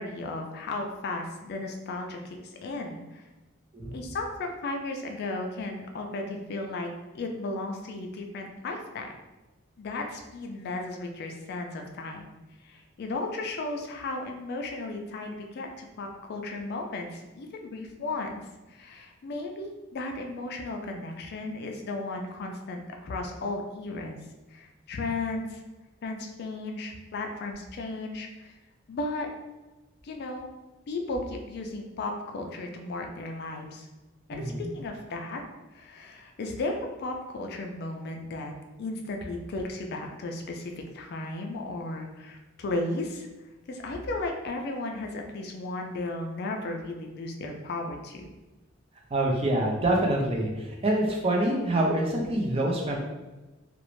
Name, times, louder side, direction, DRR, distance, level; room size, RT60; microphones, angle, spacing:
voice 1, 0.0-3.3 3.9-9.1 9.8-12.3 12.6-18.4 18.7-24.2 24.5-25.6 26.0-28.6 28.9-29.3 30.0-30.5 30.9-33.9 34.3-35.4 35.7-38.5 38.8-43.3 43.7-48.3, left 2 dB, 55° left, 3 dB, 0.3 m, -35 dB
voice 2, 34.3-34.7 49.1-53.0, right 1 dB, 30° right, 0 dB, 0.4 m, -26 dB
2.5 x 2.0 x 3.0 m, 1.1 s
head